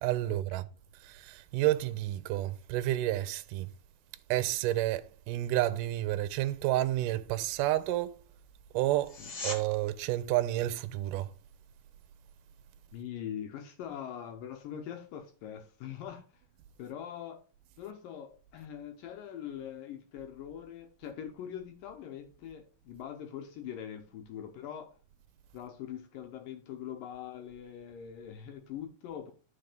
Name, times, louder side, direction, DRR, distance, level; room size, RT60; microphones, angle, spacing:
voice 1, 0.0-0.7 1.0-3.7 4.3-8.2 8.7-9.2 9.4-11.3, right 15 dB, 80° right, 2.0 m, -30 dB
sound 1, 9.0-9.6 21.0-21.1, left 2 dB, 35° left, 1.8 m, -38 dB
voice 2, 12.9-16.4 16.8-17.4 17.8-25.0 25.5-29.3, left 9 dB, 75° left, 2.5 m, -43 dB
12.0 x 4.3 x 5.1 m
omnidirectional pair, 4.2 m